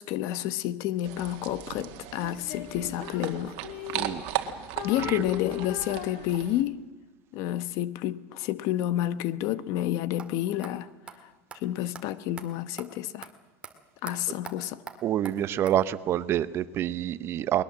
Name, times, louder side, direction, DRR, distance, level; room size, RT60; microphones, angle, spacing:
voice 1, 0.0-3.5 4.8-6.8 7.3-10.9 11.2-11.3 11.5-13.3 14.0-14.8, left 13 dB, 60° left, 1.0 m, -30 dB
sound 1, 1.0-6.6, right 12 dB, 65° right, 2.0 m, -37 dB
Female singing, 2.2-4.4 4.8-6.8, left 12 dB, 75° left, 2.0 m, -38 dB
voice 2, 3.9-4.2 5.0-5.2 15.0-17.6, right 11 dB, 40° right, 0.9 m, -27 dB
sound 2, 10.2-10.3 10.6-10.7 11.1-11.2 11.5-11.6 11.9-12.0 12.4-12.5 12.8-12.9 13.2-13.3 13.6-13.7 14.1-14.2 14.4-14.6 14.9-15.0 15.2-15.4 15.7-15.8, right 5 dB, 15° right, 2.1 m, -41 dB
21.0 x 21.0 x 7.5 m
supercardioid pair, 140°, 6 cm